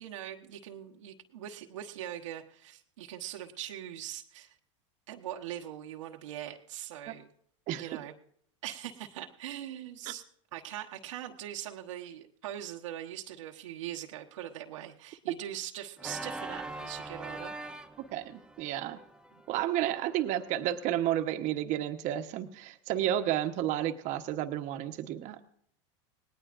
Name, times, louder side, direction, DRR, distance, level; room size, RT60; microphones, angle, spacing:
voice 1, 0.0-4.5 5.1-7.3 7.7-8.1 8.6-10.2 10.5-17.5 19.3-19.4, right 11 dB, 85° right, 2 dB, 1.2 m, -41 dB
Organ, 16.0-20.8, right 2 dB, 5° right, 0.8 m, -43 dB
voice 2, 18.1-19.0 19.5-25.4, right 12 dB, 50° right, 6 dB, 1.1 m, -31 dB
19.0 x 18.5 x 2.6 m, 0.66 s
supercardioid pair, 110°, 16 cm